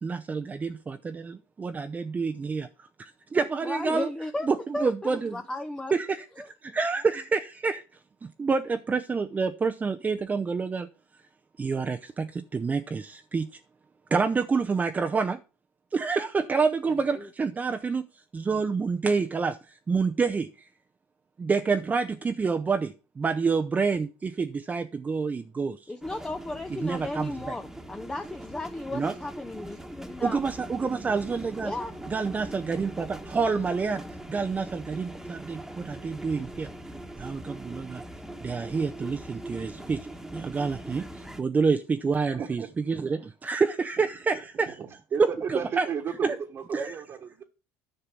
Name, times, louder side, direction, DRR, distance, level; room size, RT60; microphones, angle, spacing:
voice 1, 0.0-4.1 4.4-5.4 5.9-7.8 8.2-10.9 11.6-13.6 14.1-15.4 15.9-18.0 18.3-20.5 21.4-25.9 26.8-27.5 28.9-29.1 30.2-31.7 32.1-36.7 37.2-38.0 38.4-40.1 40.3-44.7 45.2-45.9 46.2-46.4 46.7-47.0, right 4 dB, 25° right, 0.7 m, -28 dB
voice 2, 3.5-5.9 6.4-6.5 17.1-17.3 25.9-30.4 31.6-32.0, left 2 dB, 10° left, 0.7 m, -35 dB
sound 1, 26.0-41.4, right 1 dB, 5° right, 1.4 m, -42 dB
voice 3, 42.3-42.7 44.6-47.4, right 7 dB, 45° right, 1.4 m, -34 dB
10.0 x 5.6 x 6.0 m
supercardioid pair, 90°, 7 cm